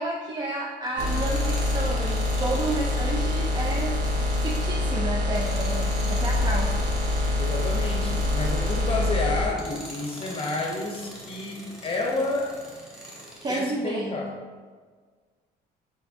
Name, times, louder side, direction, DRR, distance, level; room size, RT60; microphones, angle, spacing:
voice 1, 0.0-4.0 4.4-6.8 13.4-14.2, right 2 dB, 25° right, 0 dB, 0.4 m, -31 dB
Tools, 0.9-9.1 9.5-13.7, equal, 5° right, 1.1 m, -42 dB
sound 1, 1.0-9.5, left 2 dB, 80° right, 1.0 m, -25 dB
voice 2, 7.4-12.5 13.5-14.3, left 2 dB, 35° left, 0 dB, 0.7 m, -30 dB
4.6 x 4.2 x 2.6 m, 1.5 s
cardioid pair, 110°, 17 cm